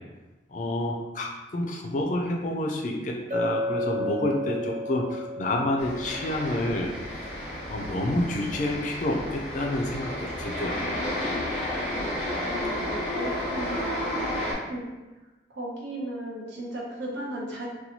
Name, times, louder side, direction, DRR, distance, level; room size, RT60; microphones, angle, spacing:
voice 1, 0.5-6.9 7.7-11.0, left 1 dB, 45° left, 1 dB, 0.4 m, -29 dB
Chink clink, 3.3-7.3, left 1 dB, 45° right, 0.4 m, -33 dB
sound 1, 5.8-14.5, left 1 dB, 5° right, 0.7 m, -32 dB
voice 2, 12.5-14.0 14.7-14.8 15.5-17.7, right 1 dB, 90° right, -3 dB, 0.7 m, -36 dB
2.7 x 2.2 x 2.9 m, 1.1 s
head